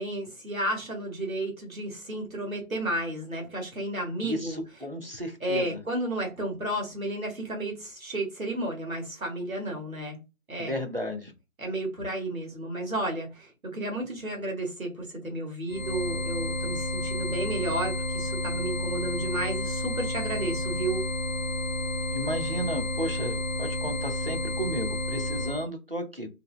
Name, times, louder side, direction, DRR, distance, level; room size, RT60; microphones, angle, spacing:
voice 1, 0.0-4.6 5.4-10.2 10.5-10.7 11.6-21.0, right 1 dB, 75° right, 1.1 m, -32 dB
voice 2, 4.2-5.8 10.6-11.3 22.1-26.3, equal, 45° right, 0.4 m, -33 dB
sound 1, 15.7-25.7, left 1 dB, 75° left, 0.6 m, -31 dB
2.6 x 2.0 x 2.4 m
figure-of-eight pair, 175°, 42 cm